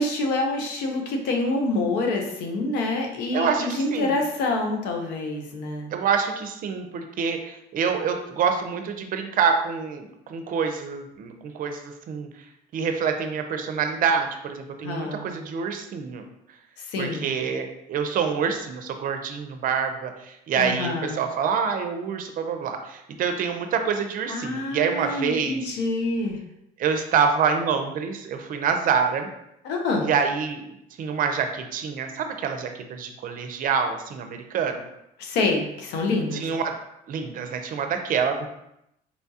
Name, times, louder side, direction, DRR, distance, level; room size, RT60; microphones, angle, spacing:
voice 1, 0.0-5.9 14.8-15.3 16.8-17.4 20.5-21.2 24.3-26.4 29.6-30.1 35.2-36.5, left 2 dB, 85° left, 2 dB, 0.7 m, -27 dB
voice 2, 3.3-4.2 5.9-12.3 12.7-16.2 17.0-25.7 26.8-29.3 30.0-30.6 31.0-34.8 36.3-36.8 37.1-38.5, right 6 dB, 55° right, 6 dB, 0.5 m, -26 dB
4.2 x 2.3 x 2.7 m, 0.82 s
cardioid pair, 110°, 17 cm